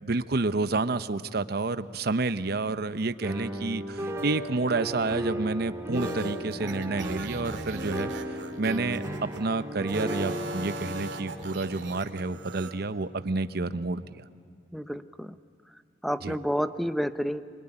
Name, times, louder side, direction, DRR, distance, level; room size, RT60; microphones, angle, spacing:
voice 1, 0.0-14.2 16.2-16.4, right 3 dB, 60° right, 12 dB, 0.8 m, -29 dB
sound 1, 3.2-13.2, equal, 15° right, 2.2 m, -35 dB
sound 2, 5.9-9.4 9.8-12.7, right 3 dB, 85° right, 2.2 m, -41 dB
voice 2, 14.7-15.3 16.0-17.4, equal, ahead, 11 dB, 0.7 m, -30 dB
25.0 x 22.5 x 9.9 m, 2.2 s
head